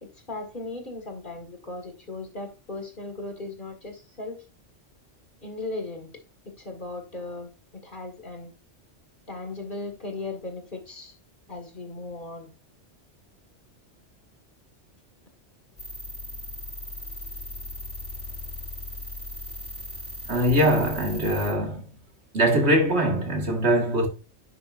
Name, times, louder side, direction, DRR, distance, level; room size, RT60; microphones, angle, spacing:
voice 1, 0.0-4.5 5.4-6.1 6.5-7.5 7.8-8.5 9.3-11.1 11.5-12.5, left 2 dB, 45° left, 2.1 m, -37 dB
sound 1, 15.8-21.6, left 1 dB, 65° left, 3.2 m, -38 dB
voice 2, 20.3-21.9 22.3-24.1, right 1 dB, 70° right, 2.1 m, -22 dB
10.5 x 6.0 x 2.6 m
omnidirectional pair, 1.2 m